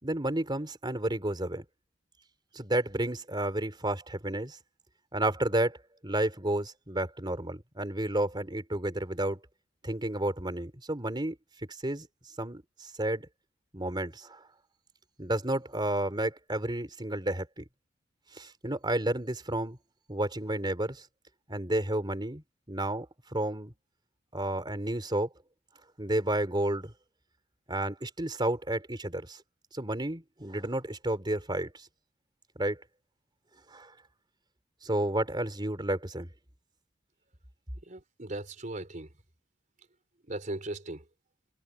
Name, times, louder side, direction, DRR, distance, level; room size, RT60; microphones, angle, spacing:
voice 1, 0.0-1.6 2.5-4.6 5.1-5.8 6.0-9.4 9.8-11.4 11.8-12.1 12.4-13.3 13.7-14.4 15.2-17.6 18.3-19.8 20.1-21.0 21.5-23.7 24.3-25.3 26.0-26.9 27.7-29.4 29.7-31.9 32.6-32.8 33.7-33.9 34.8-36.3, right 1 dB, 25° right, 3.8 m, -31 dB
voice 2, 37.9-39.1 40.3-41.0, right 2 dB, 40° right, 3.9 m, -38 dB
head